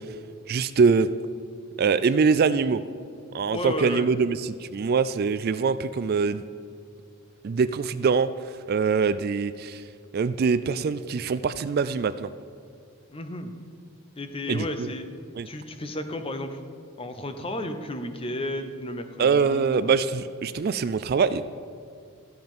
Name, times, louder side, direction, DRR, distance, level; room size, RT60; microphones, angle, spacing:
voice 1, 0.5-1.1 1.8-2.8 3.3-6.4 7.4-8.3 8.7-9.8 10.1-12.3 14.5-14.9 15.4-15.5 19.2-21.4, right 5 dB, 45° right, 14 dB, 0.3 m, -23 dB
voice 2, 3.5-4.1 13.1-13.5 14.2-15.1 15.4-16.6 17.0-19.9, left 1 dB, 25° left, 8 dB, 0.7 m, -33 dB
13.0 x 7.8 x 5.3 m, 2.3 s
head